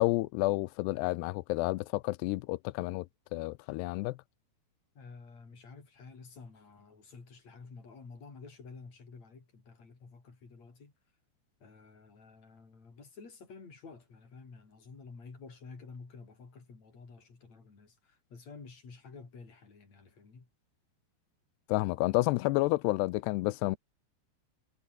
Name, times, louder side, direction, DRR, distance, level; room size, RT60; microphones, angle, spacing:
voice 1, 0.0-3.1 3.3-4.2 21.7-23.8, left 20 dB, 85° left, 2.4 m, -30 dB
voice 2, 4.9-10.9 11.6-20.5, left 4 dB, 35° left, 6.2 m, -51 dB
omnidirectional pair, 5.6 m